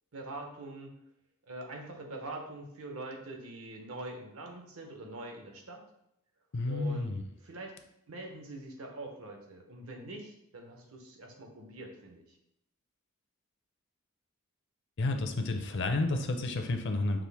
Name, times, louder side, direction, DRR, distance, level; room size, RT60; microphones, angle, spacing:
voice 1, 0.1-0.9 1.5-5.9 6.7-7.1 7.4-7.7 8.1-12.2, right 2 dB, 70° right, 3 dB, 0.8 m, -44 dB
voice 2, 6.5-7.2 15.0-17.2, left 2 dB, 55° left, 5 dB, 0.5 m, -31 dB
6.0 x 2.5 x 3.4 m, 0.79 s
head